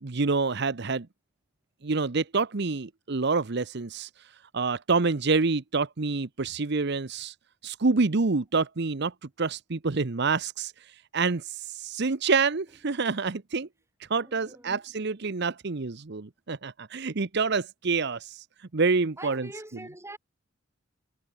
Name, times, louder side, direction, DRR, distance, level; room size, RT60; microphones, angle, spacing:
voice 1, 0.0-1.1 1.8-4.1 4.5-7.3 7.6-10.7 11.1-13.7 14.1-18.4 18.7-19.5, right 4 dB, 55° right, 0.9 m, -27 dB
voice 2, 14.1-14.9 19.2-20.2, right 1 dB, 15° right, 7.6 m, -44 dB
head